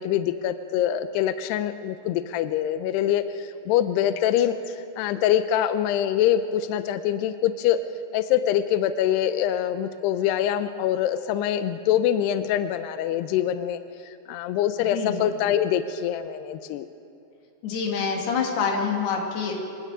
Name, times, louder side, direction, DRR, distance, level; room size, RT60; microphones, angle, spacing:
voice 1, 0.0-7.8 8.1-13.8 14.3-16.9, left 10 dB, 85° left, 10 dB, 2.4 m, -24 dB
voice 2, 17.6-19.6, left 5 dB, 60° left, 0 dB, 4.4 m, -26 dB
26.0 x 22.5 x 4.9 m, 2.7 s
omnidirectional pair, 5.5 m